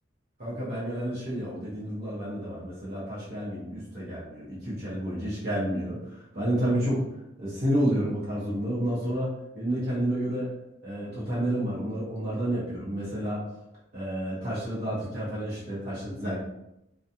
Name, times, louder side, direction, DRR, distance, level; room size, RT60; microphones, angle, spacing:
voice 1, 0.4-7.0 7.4-10.5 10.8-13.4 13.9-16.4, right 1 dB, 55° right, -8 dB, 1.0 m, -30 dB
2.4 x 2.3 x 2.7 m, 0.86 s
head